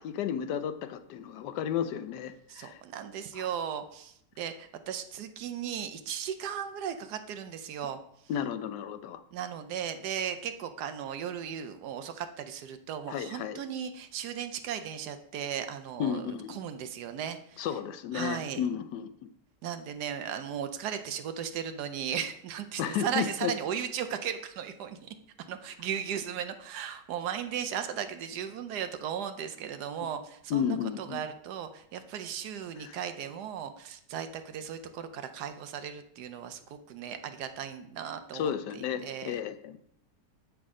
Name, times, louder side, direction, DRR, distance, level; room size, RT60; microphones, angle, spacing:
voice 1, 0.0-2.8 3.3-3.5 8.3-9.2 13.1-13.6 16.0-16.6 17.6-19.3 22.8-23.5 30.5-31.2 32.8-33.0 38.3-39.8, left 9 dB, 75° left, 11 dB, 1.1 m, -33 dB
voice 2, 2.5-8.0 9.3-17.7 18.1-18.6 19.6-25.1 25.5-39.3, right 8 dB, 70° right, 9 dB, 1.1 m, -36 dB
8.1 x 6.2 x 3.6 m, 0.71 s
omnidirectional pair, 1.9 m